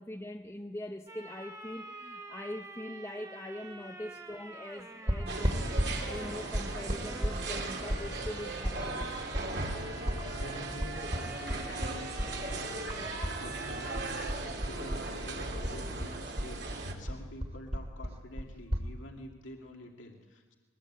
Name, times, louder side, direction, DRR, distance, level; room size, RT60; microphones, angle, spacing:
voice 1, 0.0-5.7 6.0-9.2, left 1 dB, 15° left, 3 dB, 0.8 m, -42 dB
sound 1, 1.1-14.3, right 2 dB, 15° right, 1.6 m, -47 dB
sound 2, 5.1-13.4 13.6-15.3 15.6-18.9, equal, 35° right, 2.3 m, -34 dB
sound 3, 5.3-16.9, right 2 dB, 60° right, 3.0 m, -38 dB
voice 2, 10.1-20.5, left 1 dB, 85° left, 1 dB, 2.4 m, -48 dB
22.5 x 20.5 x 8.8 m, 1.3 s
head